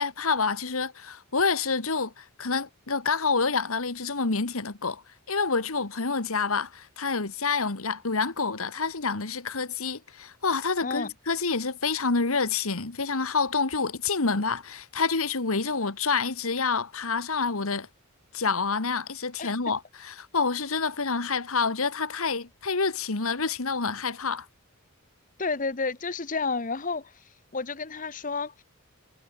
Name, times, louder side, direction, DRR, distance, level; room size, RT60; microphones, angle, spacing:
voice 1, 0.0-5.0 5.3-17.9 18.3-24.5, left 4 dB, 75° left, 1.7 m, -28 dB
voice 2, 25.4-27.1 27.5-28.5, left 4 dB, 35° left, 1.1 m, -30 dB
head